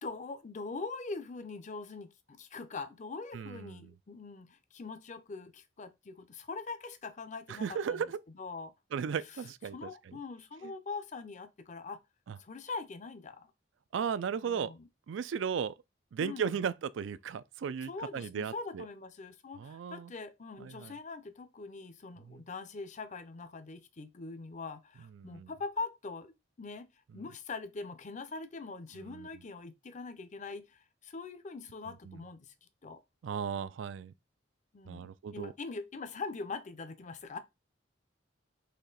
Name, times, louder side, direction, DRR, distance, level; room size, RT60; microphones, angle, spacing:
voice 1, 0.0-8.0 8.3-8.7 9.3-9.4 9.7-12.0 12.4-13.5 14.4-14.9 16.2-16.6 17.9-26.9 27.1-32.5 32.8-33.0 34.7-37.4, left 4 dB, 40° left, 0.6 m, -42 dB
voice 2, 3.3-3.9 7.5-8.2 8.9-10.2 12.3-12.4 13.9-14.7 15.1-15.8 16.1-18.9 19.6-20.1 20.6-20.9 22.3-22.4 25.2-25.5 29.0-29.3 32.1-32.2 33.2-34.1 34.9-35.5, right 7 dB, 80° right, 0.4 m, -36 dB
4.3 x 3.0 x 3.8 m
head